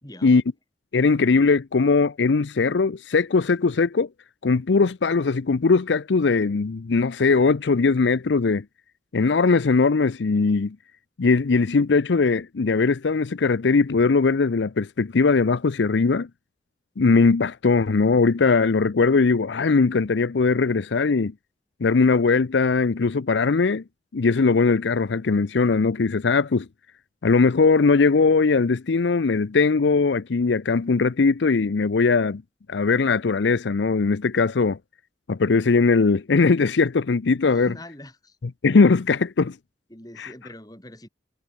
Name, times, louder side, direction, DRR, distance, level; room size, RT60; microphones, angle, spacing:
voice 1, 0.0-0.4 37.4-38.4 39.9-41.1, left 1 dB, 20° left, 4.5 m, -42 dB
voice 2, 0.9-4.1 4.4-8.6 9.1-10.8 11.2-16.3 17.0-21.3 21.8-23.8 24.1-26.7 27.2-32.4 32.7-34.8 35.3-37.7 38.6-39.6 40.2-40.3, left 4 dB, 85° left, 0.6 m, -20 dB
head